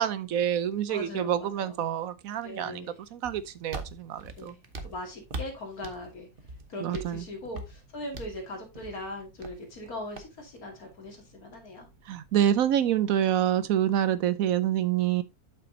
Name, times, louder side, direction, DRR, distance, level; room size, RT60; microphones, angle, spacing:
voice 1, 0.0-4.5 6.8-7.2 12.1-15.2, right 10 dB, 70° right, 1.0 m, -27 dB
voice 2, 0.9-1.8 2.4-2.9 4.4-6.3 6.7-11.9, left 1 dB, 70° left, 2.8 m, -40 dB
sound 1, 3.2-13.1, right 2 dB, 40° right, 1.2 m, -44 dB
8.2 x 7.0 x 2.7 m
omnidirectional pair, 1.6 m